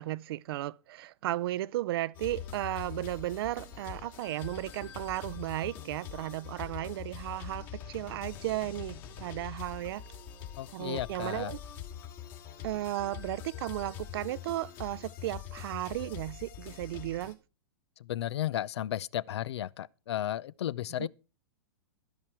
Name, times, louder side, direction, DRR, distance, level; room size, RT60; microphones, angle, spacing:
voice 1, 0.0-10.0 10.7-11.6 12.6-17.4 21.0-21.1, right 15 dB, 60° right, 0.5 m, -35 dB
sound 1, 2.1-17.3, left 9 dB, 50° left, 2.7 m, -44 dB
voice 2, 10.6-11.5 18.0-21.1, left 12 dB, 75° left, 0.6 m, -34 dB
13.0 x 10.5 x 4.5 m
hypercardioid pair, 130°, 14 cm